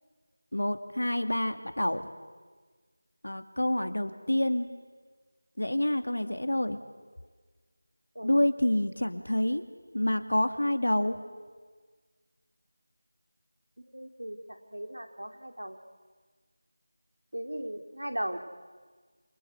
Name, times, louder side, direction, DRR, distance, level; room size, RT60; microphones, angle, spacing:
voice 1, 0.5-2.1 3.2-4.7 5.6-6.8 8.2-9.6 9.9-11.2, left 1 dB, 85° left, 8 dB, 2.5 m, -27 dB
voice 2, 13.9-15.8 17.3-18.4, right 1 dB, 85° right, 5 dB, 3.5 m, -37 dB
28.0 x 25.0 x 8.3 m, 1.5 s
figure-of-eight pair, 170°, 0 cm